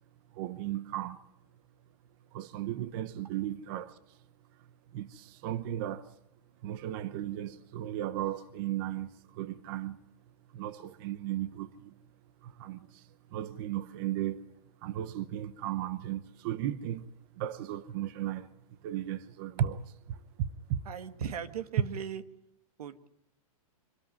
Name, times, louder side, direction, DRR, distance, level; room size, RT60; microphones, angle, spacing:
voice 1, 0.3-1.2 2.3-4.2 4.9-6.1 6.6-10.0 10.5-11.9 12.4-14.5 14.8-17.1 17.3-18.5 18.8-20.8, right 12 dB, 35° right, 0.9 m, -36 dB
voice 2, 20.9-22.2 22.8-23.1, right 8 dB, 85° right, 1.8 m, -38 dB
25.5 x 13.0 x 9.6 m
supercardioid pair, 165°, 19 cm